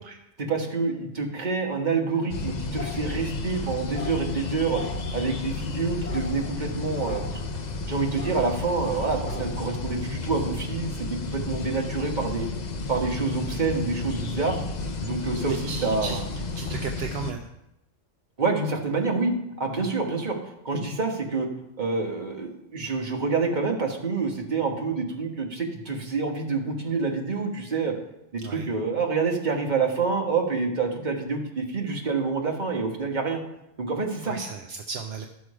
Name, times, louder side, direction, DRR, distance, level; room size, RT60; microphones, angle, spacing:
voice 1, 0.4-4.8 5.1-7.4 7.9-12.5 12.9-14.6 15.0-16.2 18.4-20.4 20.6-21.5 21.8-27.9 28.3-33.4 33.8-34.4, right 4 dB, 45° right, 1 dB, 1.6 m, -27 dB
sound 1, 2.3-17.3, left 3 dB, 45° left, 0.8 m, -32 dB
voice 2, 15.5-16.2 16.6-17.5 19.9-20.0 28.4-28.7 34.2-35.3, right 5 dB, 70° right, 4 dB, 0.9 m, -35 dB
12.5 x 6.2 x 4.9 m, 0.86 s
omnidirectional pair, 1.1 m